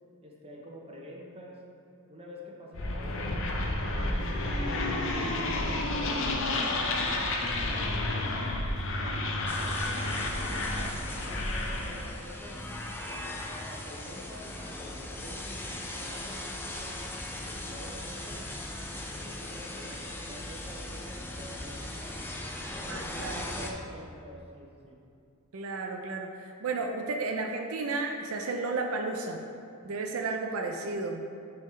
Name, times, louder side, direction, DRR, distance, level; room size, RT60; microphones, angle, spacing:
voice 1, 0.2-1.6 2.1-6.5 6.9-8.6 9.0-10.0 10.3-12.6 13.0-16.9 17.3-18.4 19.0-22.2 22.7-25.0, equal, 25° right, -2 dB, 0.8 m, -47 dB
sound 1, 2.7-12.1, left 2 dB, 60° left, 0.6 m, -30 dB
sound 2, 9.5-23.7, left 1 dB, 10° left, 0.4 m, -39 dB
voice 2, 22.9-23.6 25.5-29.4 29.8-31.3, right 3 dB, 75° right, 3 dB, 0.5 m, -33 dB
8.8 x 3.5 x 3.2 m, 2.6 s
head